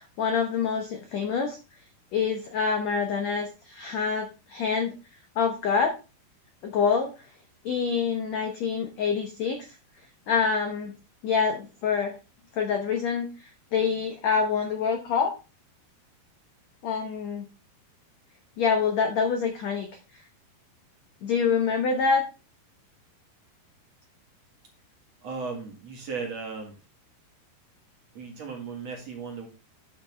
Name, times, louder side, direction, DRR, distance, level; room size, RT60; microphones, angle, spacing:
voice 1, 0.0-1.6 2.1-4.9 5.3-5.9 6.6-7.1 7.6-9.7 10.3-10.9 11.2-12.1 12.5-15.3 16.8-17.5 18.6-19.9 21.2-22.2, left 6 dB, 75° left, 4 dB, 1.5 m, -26 dB
voice 2, 25.2-26.7 28.1-29.5, right 5 dB, 50° right, 2 dB, 2.4 m, -36 dB
9.8 x 8.0 x 3.4 m, 0.31 s
omnidirectional pair, 4.7 m